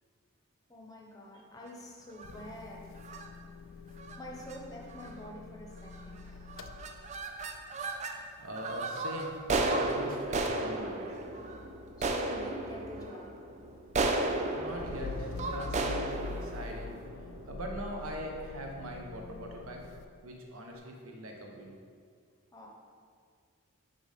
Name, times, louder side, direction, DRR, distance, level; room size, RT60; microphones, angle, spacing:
voice 1, 0.7-2.8 4.2-6.7 12.0-13.3 22.5-22.7, equal, 15° left, -1 dB, 0.9 m, -46 dB
sound 1, 2.1-2.5 3.0-3.3 4.0-4.2 4.5-4.6 4.9-5.3 5.9-6.2 6.5-8.2 8.6-17.7, right 2 dB, 30° right, 0.4 m, -34 dB
Motor vehicle (road) / Engine starting / Idling, 2.2-10.0 10.2-20.0, left 4 dB, 60° left, 0.3 m, -46 dB
voice 2, 8.4-9.3 9.6-11.2 14.5-17.0 17.5-19.8 20.2-21.7, equal, 70° right, 1 dB, 1.1 m, -41 dB
6.0 x 5.2 x 5.1 m, 2.1 s
head